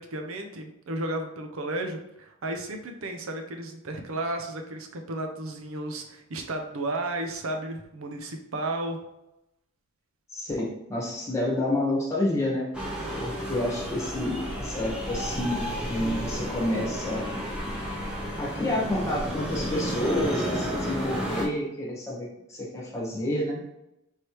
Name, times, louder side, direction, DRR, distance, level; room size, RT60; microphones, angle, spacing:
voice 1, 0.0-9.0, right 1 dB, 85° right, 4 dB, 0.6 m, -33 dB
voice 2, 10.3-12.7 13.2-17.3 18.4-23.6, left 1 dB, 15° left, -5 dB, 1.2 m, -29 dB
sound 1, 12.7-21.4, equal, 5° right, 0.7 m, -32 dB
4.5 x 3.2 x 3.0 m, 0.86 s
head